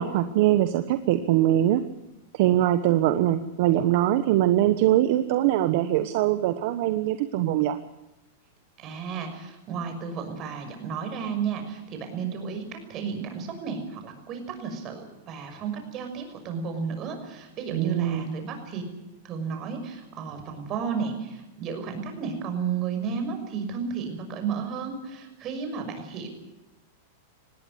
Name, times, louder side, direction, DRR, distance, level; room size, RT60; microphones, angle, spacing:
voice 1, 0.0-1.8 2.3-7.8 17.7-18.3, right 13 dB, 60° right, 10 dB, 1.1 m, -22 dB
voice 2, 8.8-18.8 19.2-26.3, right 6 dB, 35° right, 6 dB, 6.2 m, -33 dB
20.0 x 17.0 x 9.7 m, 0.99 s
hypercardioid pair, 135°, 0 cm